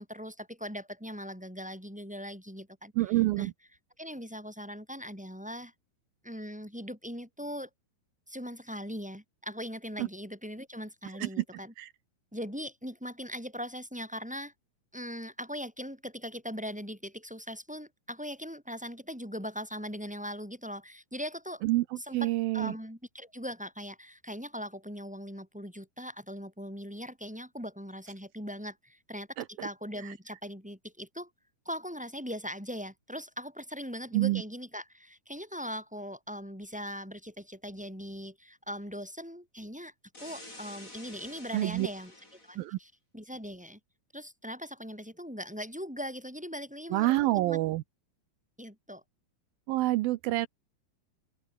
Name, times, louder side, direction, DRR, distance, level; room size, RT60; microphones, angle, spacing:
voice 1, 0.0-3.5 4.0-5.7 6.2-7.7 8.3-11.7 12.3-14.5 14.9-21.6 22.0-31.3 31.6-39.9 40.2-42.1 42.4-43.8 44.1-47.6 48.6-49.0, equal, ahead, 5.1 m, -40 dB
voice 2, 3.0-3.5 10.0-10.1 11.2-11.4 11.8-11.9 21.6-21.8 22.1-22.7 34.1-34.4 41.5-41.9 42.6-42.8 46.9-47.8 49.7-50.5, right 17 dB, 75° right, 2.3 m, -27 dB
sound 1, 40.1-42.6, left 1 dB, 20° left, 8.4 m, -49 dB
omnidirectional pair, 4.5 m